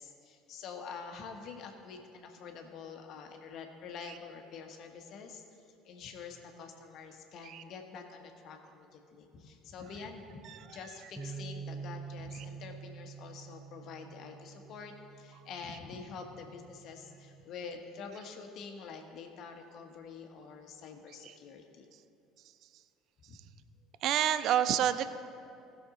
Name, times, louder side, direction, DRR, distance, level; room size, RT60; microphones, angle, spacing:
voice 1, 0.0-5.4 5.8-21.8 23.3-23.4, left 5 dB, 50° left, 4 dB, 1.3 m, -46 dB
sound 1, 11.2-17.4, right 5 dB, 15° right, 0.9 m, -47 dB
voice 2, 24.0-25.2, right 10 dB, 50° right, 13 dB, 0.4 m, -27 dB
18.5 x 6.4 x 3.9 m, 2.7 s
figure-of-eight pair, 60°, 0 cm